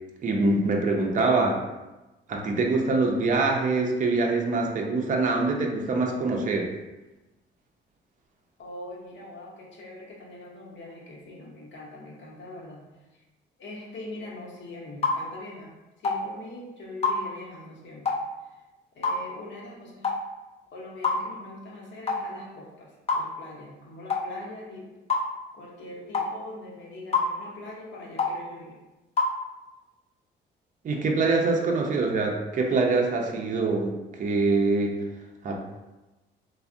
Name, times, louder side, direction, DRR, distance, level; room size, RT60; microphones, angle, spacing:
voice 1, 0.2-1.6 2.3-6.7 30.8-35.0 35.4-35.6, right 3 dB, 40° right, 1 dB, 0.5 m, -24 dB
voice 2, 8.6-12.8 13.1-13.2 13.6-18.2 18.5-18.6 18.9-20.1 20.7-24.9 25.5-28.8, left 2 dB, 65° left, -2 dB, 0.8 m, -42 dB
sound 1, 15.0-15.2 16.0-16.2 17.0-17.2 18.0-18.2 19.0-19.2 20.0-20.2 21.0-21.2 22.1-22.2 23.1-23.3 24.1-24.3 25.1-25.3 26.1-26.3 27.1-27.3 28.2-28.4 29.2-29.3, left 4 dB, 30° left, 0.4 m, -25 dB
3.3 x 2.0 x 2.5 m, 1.1 s
cardioid pair, 90°, 20 cm